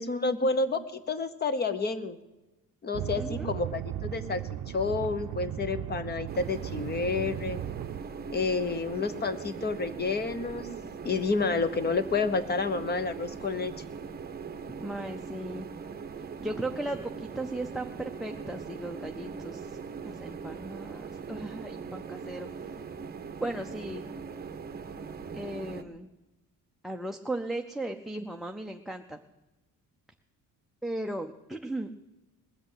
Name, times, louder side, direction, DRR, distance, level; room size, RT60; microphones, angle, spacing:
voice 1, 0.0-2.2 2.8-4.4 4.7-7.6 8.3-10.7 11.0-13.7, left 4 dB, 30° left, 12 dB, 1.0 m, -29 dB
sound 1, 2.9-8.0, right 11 dB, 60° right, 0.6 m, -36 dB
voice 2, 3.1-3.5 8.6-9.2 14.8-15.7 16.4-19.8 20.0-22.8 23.4-24.1 25.3-26.1 26.8-29.2 30.8-31.9, right 1 dB, ahead, 7 dB, 0.5 m, -37 dB
sound 2, 6.3-25.8, right 5 dB, 30° right, 0.9 m, -41 dB
20.0 x 8.0 x 7.9 m, 1.0 s
cardioid pair, 155°, 34 cm